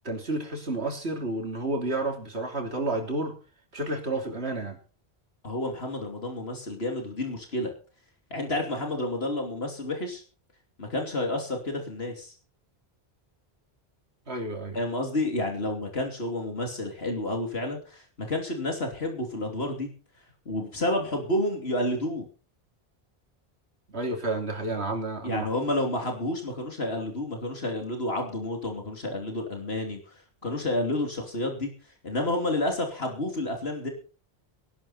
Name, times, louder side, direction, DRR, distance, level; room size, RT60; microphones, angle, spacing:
voice 1, 0.0-3.3 3.7-4.8 14.3-14.8 23.9-25.5, right 2 dB, 85° right, 3 dB, 3.4 m, -30 dB
voice 2, 5.4-7.7 8.3-10.2 10.8-12.3 14.7-19.9 20.4-22.3 25.2-31.7 32.0-33.9, left 1 dB, 70° left, 3 dB, 3.2 m, -30 dB
18.5 x 12.0 x 4.3 m, 0.37 s
omnidirectional pair, 1.1 m